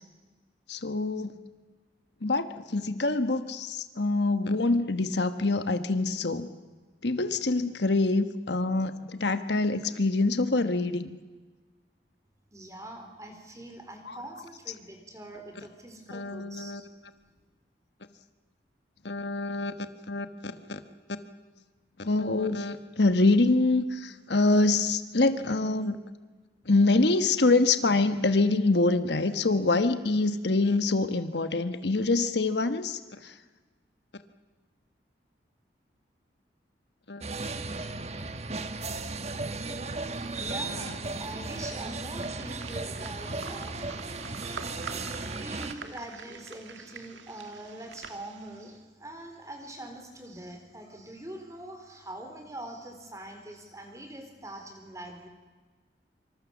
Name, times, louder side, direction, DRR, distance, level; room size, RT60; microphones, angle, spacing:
voice 1, 0.7-1.4 2.2-6.5 7.0-11.2 14.1-14.2 16.1-16.8 19.0-19.7 20.1-20.8 22.0-26.0 26.7-33.3 37.1-37.2, left 2 dB, 70° left, 10 dB, 1.2 m, -25 dB
voice 2, 12.5-16.8 40.1-43.8 44.7-55.3, right 1 dB, 15° right, 4 dB, 4.1 m, -43 dB
sound 1, 37.2-45.7, right 3 dB, 35° right, 1.4 m, -35 dB
sound 2, 41.4-48.7, right 5 dB, 85° right, 2.1 m, -46 dB
26.0 x 25.5 x 7.2 m, 1.3 s
head